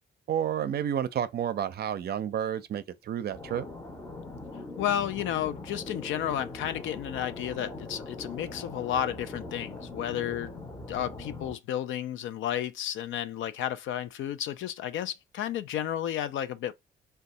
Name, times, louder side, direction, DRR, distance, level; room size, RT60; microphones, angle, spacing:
voice 1, 0.3-3.7, right 9 dB, 55° right, 0.5 m, -30 dB
sound 1, 3.3-11.5, left 2 dB, 15° left, 0.7 m, -41 dB
voice 2, 4.8-10.5 10.9-16.7, left 11 dB, 75° left, 0.5 m, -32 dB
2.6 x 2.3 x 4.0 m
cardioid pair, 90°, 20 cm